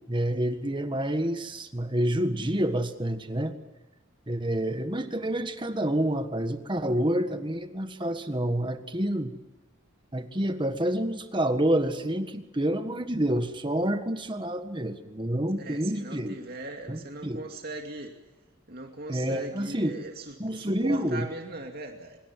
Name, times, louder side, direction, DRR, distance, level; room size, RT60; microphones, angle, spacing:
voice 1, 0.1-3.5 4.3-9.3 10.1-16.4 16.9-17.4 19.1-20.0 20.4-21.3, right 1 dB, 25° right, 8 dB, 1.5 m, -28 dB
voice 2, 15.6-18.1 18.7-22.2, right 2 dB, 50° right, 3 dB, 2.5 m, -39 dB
25.0 x 23.0 x 7.6 m, 1.1 s
head